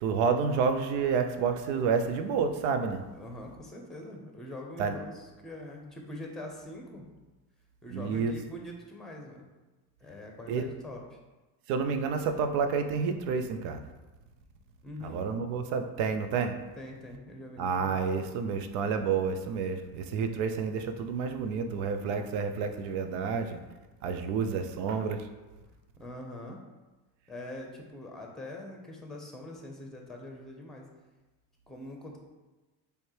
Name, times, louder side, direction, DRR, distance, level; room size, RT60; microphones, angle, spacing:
voice 1, 0.0-3.0 4.8-4.9 7.9-8.3 10.5-10.7 11.7-13.8 15.0-16.5 17.6-23.6 24.0-25.2, right 5 dB, 85° right, 8 dB, 0.6 m, -29 dB
voice 2, 3.1-7.1 7.8-9.5 10.0-11.2 14.8-15.2 16.8-18.1 26.0-26.6 27.3-30.9 31.7-32.2, left 1 dB, ahead, 1 dB, 0.9 m, -43 dB
4.3 x 3.3 x 3.2 m, 1.2 s
supercardioid pair, 80°, 46 cm